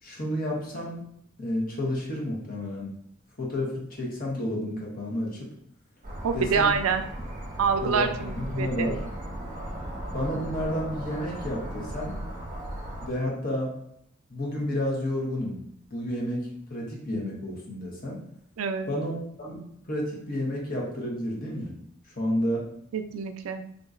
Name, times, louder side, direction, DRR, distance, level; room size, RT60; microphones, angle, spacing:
voice 1, 0.0-1.1 1.4-2.9 3.4-5.5 6.3-6.7 7.8-8.1 8.4-9.0 10.1-12.1 13.0-13.8 14.3-15.7 15.9-18.2 18.9-21.7 22.2-22.7, left 1 dB, 45° left, -3 dB, 1.0 m, -31 dB
sound 1, 6.0-13.1, right 1 dB, 40° right, 0.6 m, -36 dB
voice 2, 6.2-7.0 7.6-9.0 18.6-18.9 22.9-23.6, right 6 dB, 90° right, 8 dB, 0.4 m, -26 dB
3.7 x 2.8 x 2.4 m, 0.69 s
head